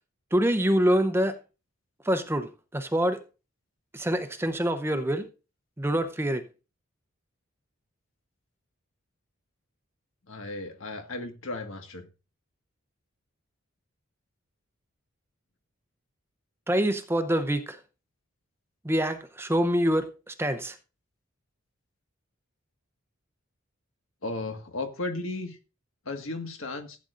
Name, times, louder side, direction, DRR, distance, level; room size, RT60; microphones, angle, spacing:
voice 1, 0.3-1.4 2.0-3.2 3.9-5.3 5.8-6.4 16.7-17.8 18.8-20.8, equal, 10° right, 0.7 m, -25 dB
voice 2, 10.3-12.1 24.2-25.6 26.0-27.0, left 2 dB, 70° left, 1.7 m, -35 dB
15.5 x 8.7 x 2.5 m
head